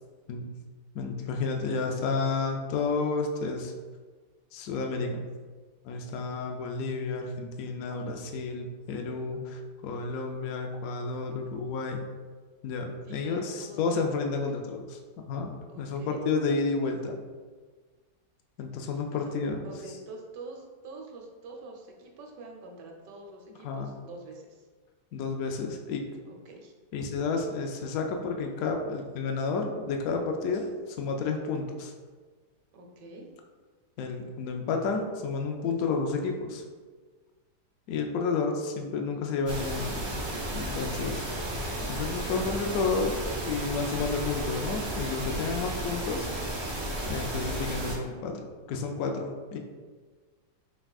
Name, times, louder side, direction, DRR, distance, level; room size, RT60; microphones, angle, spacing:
voice 1, 0.9-3.7 4.5-5.2 5.8-12.0 12.6-15.0 15.3-15.5 15.8-17.2 18.6-19.7 23.6-23.9 25.1-26.0 26.9-31.9 34.0-36.6 37.9-40.0 40.5-41.2 41.9-46.3 47.1-48.4 48.7-49.6, left 4 dB, 70° left, 3 dB, 1.0 m, -31 dB
voice 2, 13.0-14.4 15.7-16.2 19.1-19.3 19.6-24.7 26.3-26.7 32.7-33.3 41.0-41.3, right 2 dB, 85° right, 1 dB, 1.4 m, -46 dB
sound 1, 39.5-48.0, right 1 dB, 45° right, 0.3 m, -33 dB
5.6 x 3.6 x 2.3 m, 1.5 s
omnidirectional pair, 1.8 m